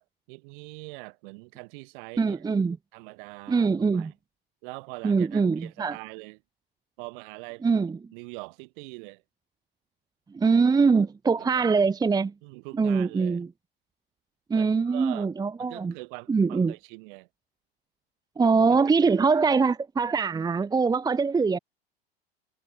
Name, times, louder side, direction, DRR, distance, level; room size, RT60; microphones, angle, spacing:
voice 1, 0.0-2.4 2.9-4.1 4.6-6.4 7.0-7.6 8.1-9.2 11.5-11.7 12.4-13.4 14.5-15.3 15.6-17.3 18.7-18.8 19.0-19.2, right 30 dB, 60° right, 6.5 m, -43 dB
voice 2, 2.2-2.8 3.5-4.1 5.0-6.0 7.6-8.0 10.3-12.3 12.7-13.5 14.5-15.9 16.3-16.7 18.4-21.6, right 5 dB, 15° right, 0.9 m, -23 dB
hypercardioid pair, 85°, 30 cm